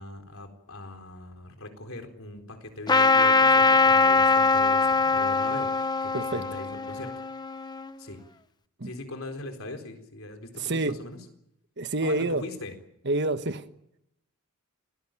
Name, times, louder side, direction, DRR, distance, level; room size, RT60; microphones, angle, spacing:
voice 1, 0.0-7.1 7.5-7.6 8.0-8.2 8.8-11.2 12.0-12.7, left 2 dB, 65° left, 4.1 m, -40 dB
Trumpet, 2.9-7.9, left 3 dB, 20° left, 0.9 m, -22 dB
voice 2, 6.1-6.4 8.8-8.9 10.6-11.0 11.8-12.4 13.0-13.6, right 2 dB, 50° right, 1.4 m, -27 dB
26.5 x 18.5 x 9.0 m
head